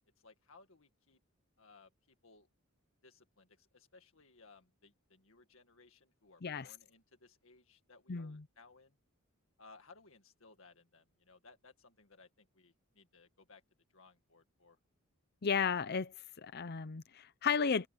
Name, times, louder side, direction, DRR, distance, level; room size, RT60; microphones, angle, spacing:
voice 1, 0.2-1.2 1.6-2.5 3.0-9.0 9.6-13.6 13.9-14.8, left 3 dB, 70° left, 2.0 m, -62 dB
voice 2, 8.1-8.4 15.4-16.1 16.4-17.9, left 6 dB, 50° left, 0.6 m, -33 dB
head